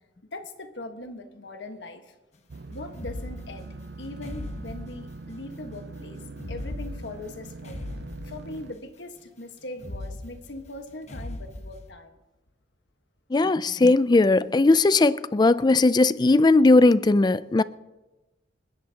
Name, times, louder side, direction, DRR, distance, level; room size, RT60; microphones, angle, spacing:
voice 1, 0.3-2.1 2.7-3.7 4.0-6.2 6.5-7.8 8.2-12.2, left 2 dB, 75° left, 1.4 m, -40 dB
sound 1, 2.5-8.7, right 3 dB, 60° right, 0.5 m, -42 dB
sound 2, 2.9-5.5 6.3-8.9 9.7-11.9, left 1 dB, 40° left, 1.1 m, -38 dB
voice 2, 13.3-17.6, left 2 dB, 25° left, 0.3 m, -18 dB
28.5 x 10.5 x 2.9 m
head